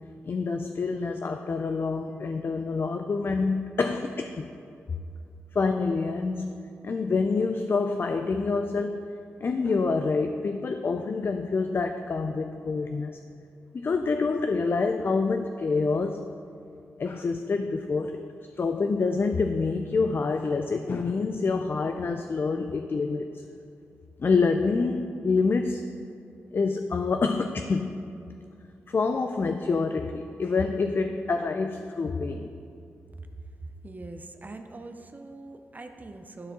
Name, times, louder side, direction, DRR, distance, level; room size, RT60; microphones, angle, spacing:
voice 1, 0.2-4.5 5.5-6.6 6.8-9.1 9.4-13.1 13.7-16.3 17.0-18.2 18.6-23.4 24.2-25.9 26.5-28.0 28.9-32.5, left 4 dB, 45° left, 6 dB, 0.3 m, -27 dB
voice 2, 33.8-36.5, right 2 dB, 35° right, 7 dB, 0.6 m, -42 dB
11.5 x 4.6 x 3.7 m, 2.5 s
supercardioid pair, 50°, 5 cm